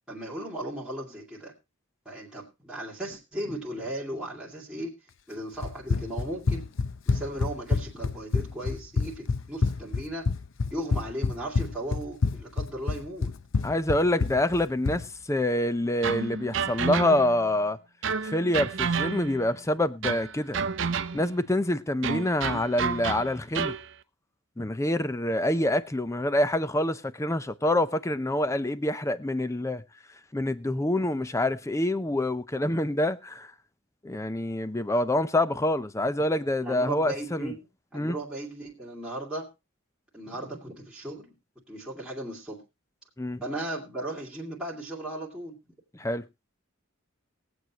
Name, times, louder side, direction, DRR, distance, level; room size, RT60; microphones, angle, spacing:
voice 1, 0.1-1.5 2.0-4.9 5.3-6.6 7.1-10.3 10.7-13.3 36.6-39.5 40.1-41.3 41.7-42.6 43.4-45.5, right 1 dB, 5° right, 2.4 m, -36 dB
Run, 5.6-15.1, left 4 dB, 70° left, 0.7 m, -28 dB
voice 2, 13.6-17.8 18.2-20.6 21.1-23.7 24.6-29.8 30.3-33.5 34.0-37.5 37.9-38.2 43.2-43.4 45.9-46.2, left 1 dB, 15° left, 0.5 m, -26 dB
sound 1, 16.0-17.4 18.0-19.5 20.0-21.4 22.0-23.9, right 6 dB, 65° right, 0.7 m, -30 dB
21.5 x 8.0 x 2.9 m
head